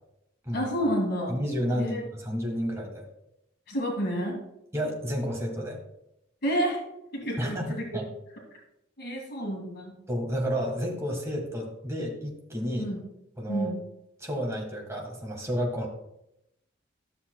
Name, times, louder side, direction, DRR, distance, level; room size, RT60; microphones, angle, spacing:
voice 1, 0.5-1.4 1.7-2.1 3.7-4.4 6.4-6.8 7.1-8.0 9.0-9.9 12.8-13.0 13.5-13.8, equal, 55° left, -1 dB, 2.1 m, -29 dB
voice 2, 1.3-3.1 4.7-5.8 7.4-7.7 7.9-8.0 10.1-12.9 13.4-13.7 14.2-15.9, equal, 15° right, 0 dB, 1.6 m, -31 dB
12.0 x 7.0 x 2.3 m, 0.83 s
head